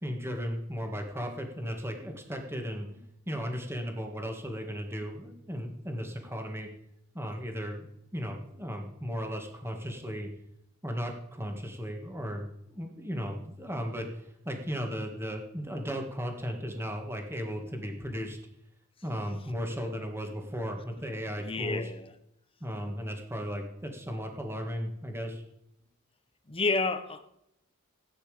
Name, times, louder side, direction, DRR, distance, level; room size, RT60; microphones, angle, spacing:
voice 1, 0.0-2.9 3.3-6.7 7.1-7.9 8.1-10.3 10.8-18.4 19.0-21.9 22.6-25.4, equal, 10° right, 3 dB, 1.9 m, -36 dB
voice 2, 21.4-22.1 26.5-27.3, left 3 dB, 25° left, 9 dB, 1.1 m, -30 dB
16.0 x 9.6 x 5.1 m, 0.80 s
head